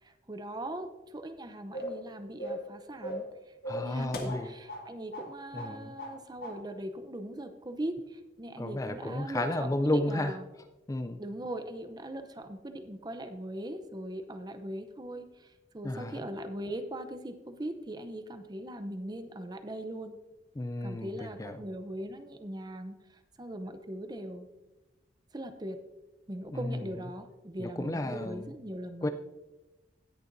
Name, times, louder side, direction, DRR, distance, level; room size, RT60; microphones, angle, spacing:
voice 1, 0.0-10.4 11.2-20.2 20.8-24.5 25.3-25.8 26.3-29.1, right 1 dB, 25° right, 8 dB, 0.7 m, -40 dB
sound 1, 1.7-2.0 2.4-2.7 3.0-3.3 3.6-4.9 5.1-5.3 5.6-6.2 6.4-6.6, equal, 60° left, 1.7 m, -38 dB
voice 2, 3.7-4.5 5.5-5.9 8.6-10.4 10.9-11.2 15.8-16.2 20.6-21.6 26.5-26.9 27.6-28.5 29.0-29.1, left 1 dB, 20° left, 8 dB, 0.4 m, -32 dB
17.5 x 6.8 x 2.6 m, 1.1 s
head